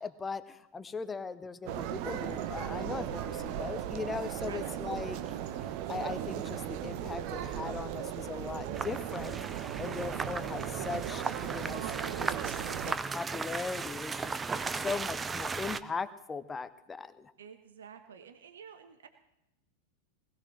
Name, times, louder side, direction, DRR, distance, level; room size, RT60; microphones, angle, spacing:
voice 1, 0.0-5.2 5.9-9.4 9.8-11.9 12.2-12.3 12.9-14.4 14.7-17.3, left 4 dB, 15° left, 13 dB, 0.9 m, -39 dB
sound 1, 1.6-12.9, right 10 dB, 45° right, 0.9 m, -37 dB
sound 2, 8.7-15.8, right 4 dB, 15° right, 0.6 m, -36 dB
voice 2, 17.4-19.1, right 7 dB, 65° right, 8 dB, 1.2 m, -51 dB
20.0 x 16.0 x 3.4 m, 0.85 s
figure-of-eight pair, 90°, 0 cm